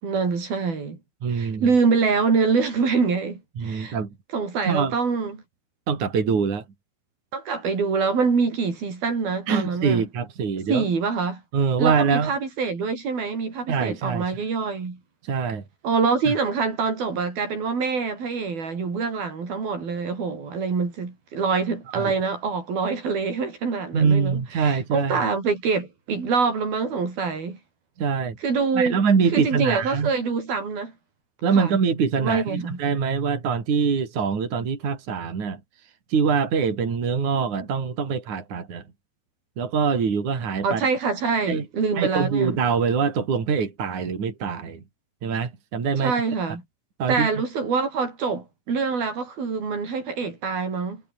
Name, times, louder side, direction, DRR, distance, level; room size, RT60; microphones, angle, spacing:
voice 1, 0.0-1.0 1.3-4.0 4.3-5.4 7.3-10.1 10.7-11.4 11.8-15.0 15.8-27.6 28.4-29.0 29.3-30.9 31.5-31.8 32.2-32.8 40.6-42.6 46.0-46.6 47.1-51.0, right 5 dB, 75° right, 7.7 m, -25 dB
voice 2, 1.2-1.7 3.6-4.1 4.7-4.9 5.9-6.6 9.5-10.9 11.5-12.3 13.7-14.2 15.2-15.6 16.3-16.4 22.0-22.1 23.9-25.2 28.0-28.4 28.8-30.1 31.4-35.6 36.1-38.8 39.6-40.8 41.5-41.6 42.0-44.8 45.2-46.1 47.0-47.3, right 6 dB, 50° right, 5.3 m, -24 dB
omnidirectional pair, 4.3 m